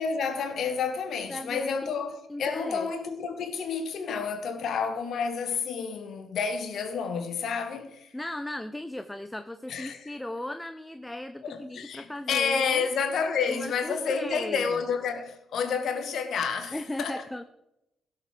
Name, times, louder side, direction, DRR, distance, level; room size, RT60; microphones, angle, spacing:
voice 1, 0.0-8.1 9.7-10.1 11.4-17.2, left 6 dB, 55° left, 2.1 m, -30 dB
voice 2, 1.3-1.9 2.3-2.9 8.1-12.9 13.5-14.8 16.7-17.4, left 1 dB, 10° left, 0.9 m, -37 dB
17.5 x 6.9 x 6.8 m
figure-of-eight pair, 40°, 0 cm